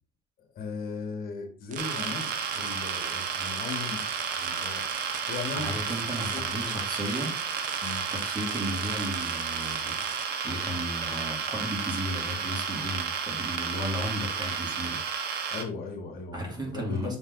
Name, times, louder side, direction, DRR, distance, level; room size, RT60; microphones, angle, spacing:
voice 1, 0.6-2.3 2.6-4.0 4.4-5.8 6.3-6.7 7.8-8.0 15.5-17.2, left 4 dB, 60° left, 3 dB, 1.8 m, -37 dB
sound 1, 1.7-10.3, right 9 dB, 50° right, 0.6 m, -42 dB
sound 2, 1.8-15.6, right 6 dB, 70° right, 1.2 m, -32 dB
voice 2, 5.5-7.4 8.1-10.0 10.4-15.0 16.3-17.2, equal, 25° right, -1 dB, 2.8 m, -34 dB
7.0 x 4.0 x 4.0 m, 0.38 s
cardioid pair, 110°, 17 cm